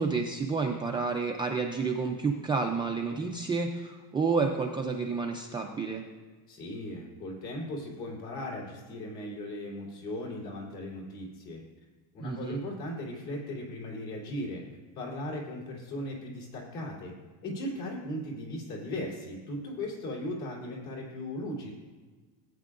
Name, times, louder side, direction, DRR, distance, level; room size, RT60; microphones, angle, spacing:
voice 1, 0.0-6.0 12.2-12.6, right 4 dB, 10° right, 0 dB, 0.3 m, -30 dB
voice 2, 6.5-11.6 12.1-14.6 15.0-17.1 17.4-21.7, left 1 dB, 55° left, -3 dB, 3.5 m, -37 dB
18.0 x 9.1 x 2.5 m, 1.4 s
cardioid pair, 165°, 44 cm